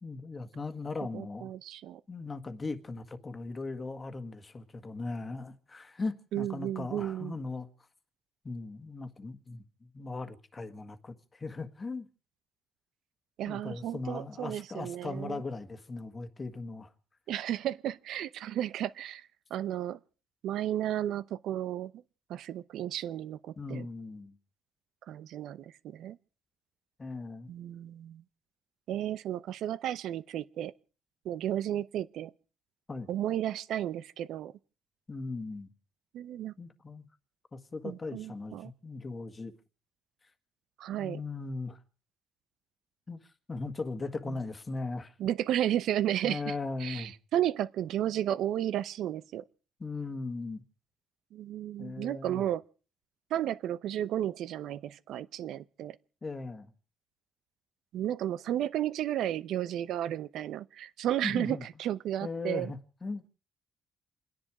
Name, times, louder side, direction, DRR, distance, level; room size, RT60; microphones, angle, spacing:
voice 1, 0.0-1.5 2.1-7.7 8.4-12.0 13.5-16.9 23.6-24.4 27.0-27.5 32.9-33.1 35.1-35.7 36.6-37.0 37.5-39.5 40.9-41.8 43.1-43.2 43.5-45.1 46.2-47.1 49.8-50.6 51.8-52.5 56.2-56.7 61.2-61.6 62.2-63.2, left 3 dB, 25° left, 1.6 m, -38 dB
voice 2, 1.1-2.0 6.3-7.4 13.4-15.4 17.3-20.0 20.4-21.9 22.3-23.9 25.1-26.2 27.5-28.2 28.9-30.7 31.2-32.3 33.1-34.5 36.1-36.5 37.8-38.7 40.8-41.2 44.3-44.4 45.2-46.5 46.8-49.4 51.3-52.6 53.3-56.0 57.9-62.7, right 11 dB, 75° right, 0.7 m, -33 dB
28.5 x 10.5 x 4.8 m
cardioid pair, 115°, 0 cm